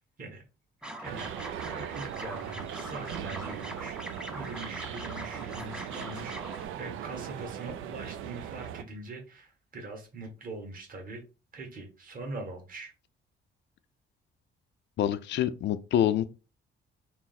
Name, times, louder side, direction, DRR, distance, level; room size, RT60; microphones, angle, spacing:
sound 1, 0.8-6.7, equal, 5° right, 0.6 m, -42 dB
voice 1, 1.0-1.4 1.6-11.2 11.5-12.9, right 2 dB, 45° right, 1.5 m, -42 dB
sound 2, 1.0-8.8, right 10 dB, 85° right, 0.4 m, -39 dB
voice 2, 15.0-16.2, left 11 dB, 65° left, 0.4 m, -26 dB
4.7 x 2.0 x 4.0 m
cardioid pair, 90°, 20 cm